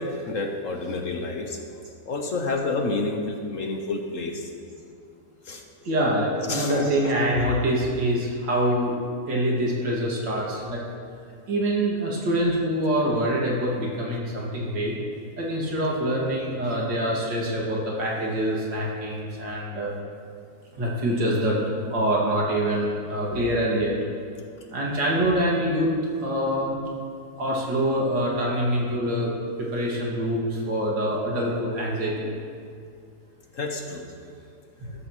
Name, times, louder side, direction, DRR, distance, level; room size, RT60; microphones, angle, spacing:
voice 1, 0.0-1.6 2.1-4.5 5.4-5.6 6.5-7.1 33.5-34.0, left 3 dB, 55° left, 3 dB, 1.1 m, -29 dB
voice 2, 5.8-9.0 9.3-10.8 11.5-14.9 15.4-19.9 20.7-21.6 21.9-24.0 24.7-25.9 26.2-26.7 27.4-29.3 29.6-32.3, equal, 90° right, -4 dB, 2.8 m, -25 dB
13.5 x 13.0 x 3.1 m, 2.3 s
omnidirectional pair, 1.9 m